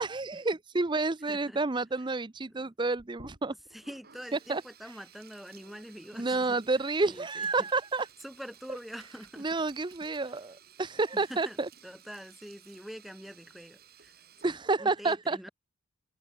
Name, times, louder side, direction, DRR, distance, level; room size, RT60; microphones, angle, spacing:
voice 1, 0.0-3.5 4.3-5.0 6.2-8.1 9.4-11.7 14.4-15.5, right 3 dB, 20° right, 0.5 m, -30 dB
voice 2, 1.3-1.6 2.6-2.7 3.7-6.6 7.0-7.7 8.2-9.5 11.1-11.6 11.8-14.1 14.4-15.5, equal, ahead, 2.5 m, -45 dB
Sink (filling or washing), 2.9-15.0, right 6 dB, 45° right, 7.4 m, -56 dB
head